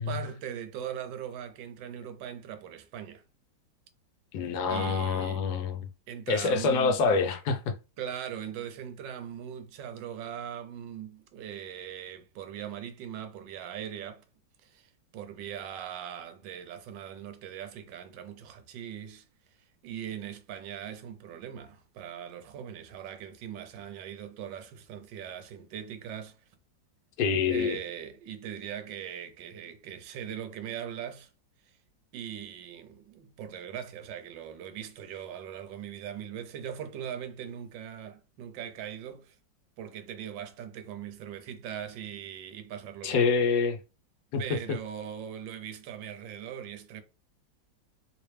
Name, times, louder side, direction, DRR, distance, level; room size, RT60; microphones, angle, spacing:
voice 1, 0.0-3.2 4.7-5.4 6.1-7.1 8.0-14.2 14.6-19.2 19.8-26.4 27.5-31.3 31.7-31.8 32.1-39.4 39.8-43.3 44.4-47.0, right 9 dB, 75° right, 1.3 m, -40 dB
voice 2, 4.3-5.9 6.3-7.7 27.2-27.8 43.0-43.8 44.3-44.4, left 5 dB, 70° left, 1.0 m, -26 dB
3.2 x 2.9 x 3.2 m
omnidirectional pair, 2.0 m